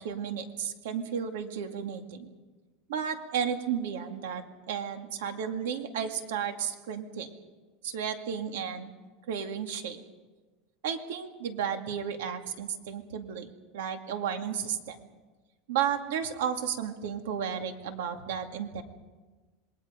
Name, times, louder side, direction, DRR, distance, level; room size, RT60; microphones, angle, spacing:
voice 1, 0.0-2.3 2.9-7.3 7.8-8.9 9.3-10.0 10.8-13.5 13.7-15.0 15.7-18.8, right 8 dB, 85° right, 6 dB, 2.3 m, -33 dB
27.0 x 21.0 x 5.2 m, 1.2 s
supercardioid pair, 165°, 0 cm